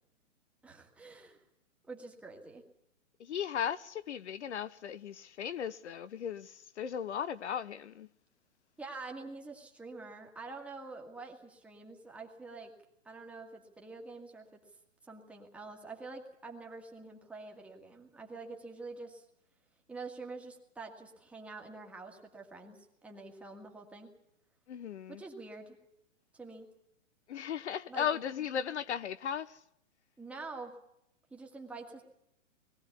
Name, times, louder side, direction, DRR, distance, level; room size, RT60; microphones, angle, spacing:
voice 1, 0.6-1.4 1.9-2.6 8.8-12.7 13.1-14.5 15.1-19.3 19.9-24.1 25.1-25.8 26.3-26.7 27.9-28.1 30.2-30.8 31.3-32.0, right 3 dB, 5° right, 1.8 m, -46 dB
voice 2, 3.2-8.1 24.7-25.2 27.3-29.6, left 8 dB, 60° left, 0.9 m, -36 dB
21.0 x 15.5 x 9.6 m
hypercardioid pair, 165°, 39 cm